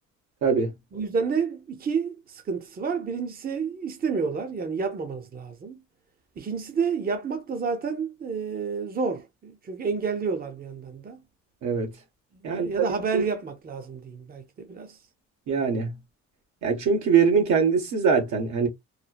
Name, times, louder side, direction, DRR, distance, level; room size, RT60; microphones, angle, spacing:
voice 1, 0.4-0.7 11.6-11.9 12.4-12.8 13.1-13.2 15.5-15.9 16.6-18.7, right 6 dB, 75° right, 1.2 m, -22 dB
voice 2, 0.9-5.8 6.4-11.2 12.4-15.0, right 5 dB, 30° right, 0.7 m, -30 dB
3.2 x 2.0 x 2.2 m
cardioid pair, 90°, 30 cm